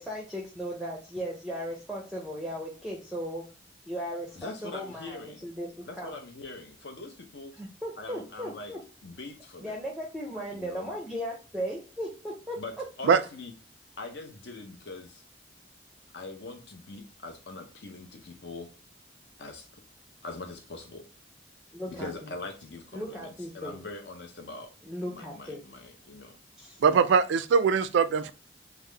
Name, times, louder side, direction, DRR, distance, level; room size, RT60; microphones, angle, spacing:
voice 1, 0.0-3.4 3.9-5.7 6.0-6.2 7.5-8.8 9.6-12.6 21.7-22.3 22.9-23.8 24.9-25.6 26.6-26.8, equal, ahead, -2 dB, 0.5 m, -36 dB
voice 2, 4.3-5.5 5.8-7.5 8.0-8.7 9.0-9.8 10.5-10.9 12.6-13.5 14.0-15.2 16.1-18.7 19.4-19.7 20.2-21.0 21.9-24.7 25.1-26.4, left 3 dB, 70° left, 4 dB, 0.7 m, -42 dB
voice 3, 26.8-28.3, right 6 dB, 75° right, 13 dB, 0.3 m, -22 dB
3.6 x 2.0 x 3.2 m, 0.36 s
head